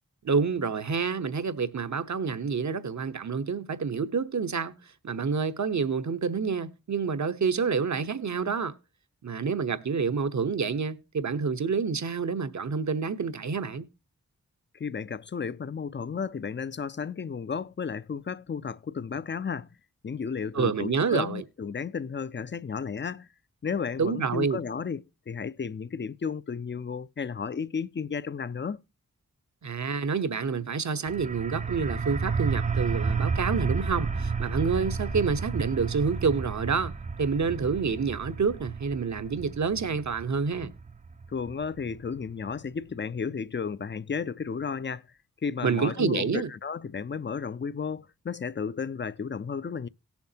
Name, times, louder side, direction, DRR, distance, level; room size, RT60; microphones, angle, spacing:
voice 1, 0.2-4.7 5.0-8.7 9.2-13.9 20.5-21.4 24.0-24.6 29.6-40.7 45.6-46.5, right 5 dB, 60° right, 1.0 m, -28 dB
voice 2, 14.7-19.7 20.0-23.3 23.6-28.8 41.3-45.0 45.4-49.9, left 6 dB, 35° left, 0.5 m, -33 dB
sound 1, 31.1-42.5, right 5 dB, 25° right, 0.6 m, -32 dB
17.5 x 7.1 x 2.8 m
cardioid pair, 50°, 32 cm